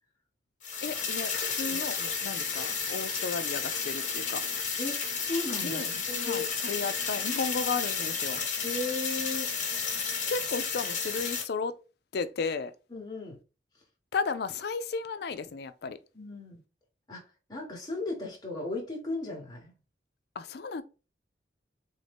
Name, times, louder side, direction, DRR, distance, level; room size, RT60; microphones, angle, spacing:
sound 1, 0.6-11.4, left 5 dB, 45° left, 1.1 m, -32 dB
voice 1, 0.8-2.0 2.2-4.4 5.6-5.9 6.2-8.4 10.3-11.8 12.1-12.7 14.1-16.0 20.4-20.8, left 5 dB, 60° left, 0.4 m, -34 dB
voice 2, 1.6-2.1 4.8-6.5 6.8-7.0 8.6-9.5 12.9-13.4 16.1-16.6 17.1-19.7, left 2 dB, 20° left, 1.1 m, -36 dB
3.4 x 2.6 x 3.4 m
head